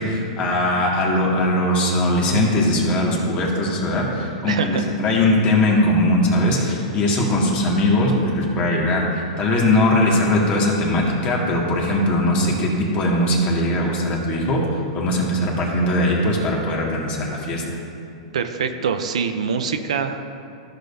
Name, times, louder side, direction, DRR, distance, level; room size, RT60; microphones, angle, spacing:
voice 1, 0.0-17.6, left 1 dB, 35° left, -2 dB, 1.9 m, -20 dB
voice 2, 4.5-4.8 18.3-20.3, right 6 dB, 80° right, 8 dB, 0.6 m, -24 dB
14.0 x 6.7 x 2.7 m, 2.5 s
hypercardioid pair, 120°, 3 cm